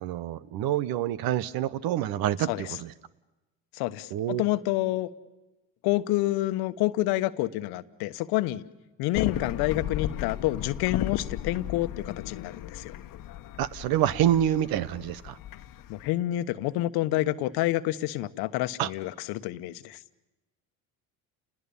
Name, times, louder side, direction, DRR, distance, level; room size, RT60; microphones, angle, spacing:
voice 1, 0.0-2.9 4.1-4.5 13.6-15.4 18.8-18.9, right 11 dB, 65° right, 18 dB, 1.1 m, -27 dB
voice 2, 3.8-5.1 5.8-8.6 9.0-12.9 15.9-20.0, left 16 dB, 75° left, 12 dB, 1.2 m, -28 dB
sound 1, 9.1-16.1, left 12 dB, 55° left, 1.2 m, -35 dB
29.5 x 20.5 x 7.1 m, 1.0 s
supercardioid pair, 90°, 38 cm